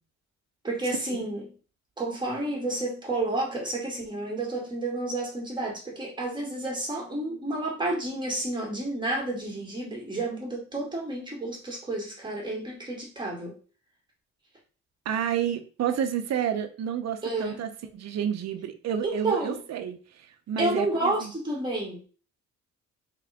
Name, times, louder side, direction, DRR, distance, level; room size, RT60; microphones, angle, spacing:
voice 1, 0.6-1.4 2.0-13.5 17.2-17.6 19.0-19.6 20.6-22.0, right 2 dB, 15° right, -3 dB, 2.2 m, -30 dB
voice 2, 15.1-21.3, right 9 dB, 60° right, 8 dB, 0.7 m, -30 dB
3.8 x 3.4 x 3.5 m, 0.39 s
cardioid pair, 90°, 30 cm